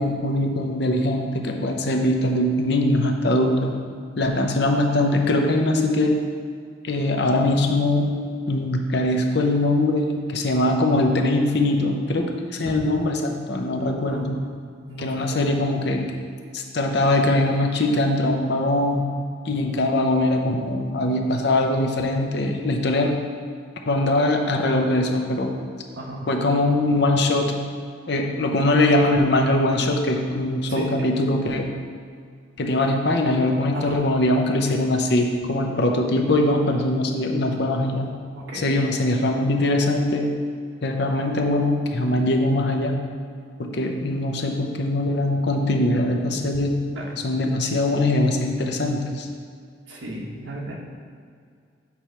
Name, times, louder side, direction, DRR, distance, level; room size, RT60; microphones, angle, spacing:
voice 1, 0.0-3.7 4.2-6.2 6.8-8.1 8.5-14.4 15.0-16.1 16.5-19.0 19.4-23.1 23.9-25.5 26.3-27.6 28.1-31.7 32.6-38.1 38.5-40.4 40.8-43.0 43.6-46.7 47.1-49.3, left 1 dB, 60° left, 3 dB, 0.7 m, -22 dB
voice 2, 13.9-14.5 14.9-15.4 25.9-26.2 30.7-31.1 33.7-34.0 38.3-38.9 46.9-47.1 49.9-50.8, right 1 dB, 75° right, -2 dB, 1.2 m, -34 dB
8.4 x 3.1 x 5.6 m, 2.2 s
head